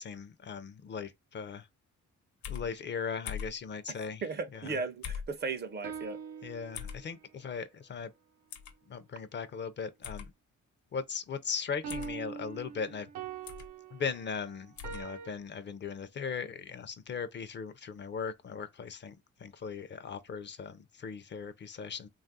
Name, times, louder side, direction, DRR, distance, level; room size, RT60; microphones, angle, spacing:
voice 1, 0.0-1.7 2.5-4.2 4.5-4.8 6.4-8.1 8.9-10.3 10.9-13.1 13.9-22.1, left 6 dB, 40° left, 0.4 m, -38 dB
sound 1, 2.4-2.7 3.3-3.6 5.0-5.3 6.7-7.0 8.5-8.7 10.0-10.3 11.9-12.1 13.5-13.7 14.8-15.0, left 7 dB, 70° left, 0.8 m, -40 dB
voice 2, 4.2-6.2, right 4 dB, 35° right, 0.5 m, -36 dB
sound 2, 5.4-7.3 11.8-15.3, right 7 dB, 80° right, 0.7 m, -43 dB
3.1 x 2.3 x 2.6 m
cardioid pair, 90°, 30 cm